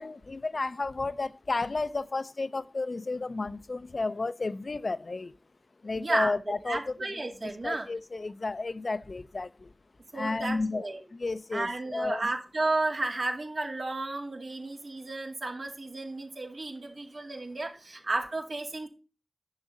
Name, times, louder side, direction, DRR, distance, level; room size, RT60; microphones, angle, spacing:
voice 1, 0.0-5.3 5.8-6.8 7.4-9.7 10.1-10.8 11.1-12.3, left 3 dB, 75° left, 0.5 m, -32 dB
voice 2, 6.0-7.9 10.1-11.0 11.5-18.9, right 2 dB, 85° right, 2.3 m, -33 dB
10.5 x 6.1 x 4.0 m
wide cardioid pair, 50°, 0 cm